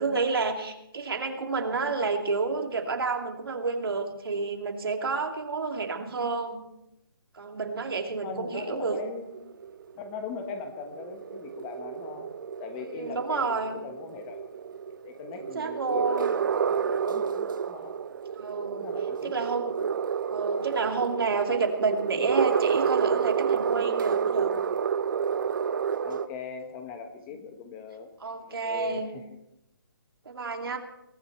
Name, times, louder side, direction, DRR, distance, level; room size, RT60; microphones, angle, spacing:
voice 1, 0.0-6.7 7.3-9.0 12.8-13.8 15.5-16.3 18.4-18.9 19.2-19.7 20.3-24.5 28.2-29.1 30.3-30.8, right 4 dB, 75° right, 3 dB, 2.5 m, -29 dB
voice 2, 8.2-9.4 9.9-12.3 12.6-14.5 15.0-17.9 18.8-19.6 26.0-28.1 28.4-29.4, left 6 dB, 20° left, 7 dB, 1.4 m, -40 dB
sound 1, 8.9-26.3, right 7 dB, 60° right, 0.7 m, -30 dB
22.5 x 14.0 x 3.3 m, 0.81 s
hypercardioid pair, 155°, 12 cm